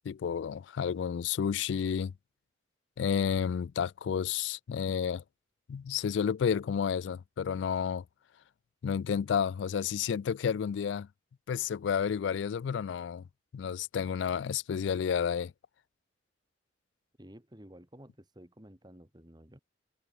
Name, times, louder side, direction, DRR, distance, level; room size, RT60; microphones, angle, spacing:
voice 1, 0.1-2.1 3.0-5.2 5.7-8.0 8.8-11.1 11.5-13.2 13.5-15.5, left 7 dB, 75° left, 0.3 m, -31 dB
voice 2, 17.2-19.6, equal, 20° right, 3.0 m, -53 dB
head